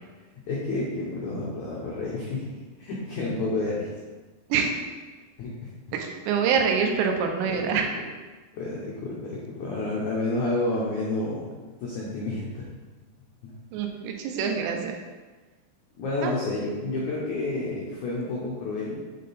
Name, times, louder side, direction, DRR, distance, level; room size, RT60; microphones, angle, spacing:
voice 1, 0.5-3.9 5.4-5.7 6.8-7.0 7.4-7.8 8.5-12.7 13.4-13.5 15.9-19.0, left 2 dB, 85° left, -5 dB, 1.7 m, -30 dB
voice 2, 5.9-8.0 13.7-14.9 16.2-16.3, right 6 dB, 85° right, 3 dB, 2.9 m, -25 dB
7.4 x 3.8 x 4.1 m, 1.3 s
omnidirectional pair, 4.9 m